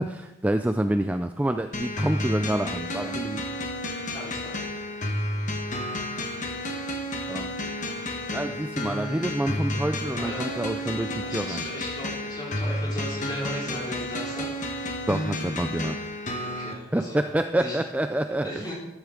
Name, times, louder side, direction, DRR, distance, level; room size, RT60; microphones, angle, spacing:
voice 1, 0.0-3.5 7.3-7.5 8.3-11.6 15.1-16.1 16.9-18.7, right 1 dB, 10° right, 8 dB, 0.3 m, -27 dB
sound 1, 1.7-16.7, left 1 dB, 40° left, 1.3 m, -31 dB
voice 2, 4.1-4.6 10.0-14.5 16.4-17.8 18.4-18.7, equal, 20° left, -5 dB, 4.4 m, -37 dB
13.5 x 12.0 x 3.7 m, 0.96 s
head